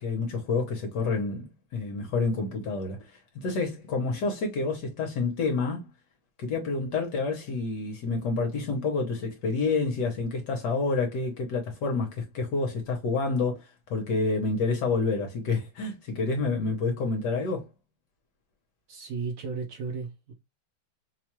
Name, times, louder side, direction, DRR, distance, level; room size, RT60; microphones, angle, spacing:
voice 1, 0.0-5.9 6.4-17.7, left 4 dB, 65° left, 1.2 m, -28 dB
voice 2, 18.9-20.3, right 5 dB, 75° right, 1.4 m, -34 dB
4.4 x 2.3 x 2.9 m
omnidirectional pair, 2.4 m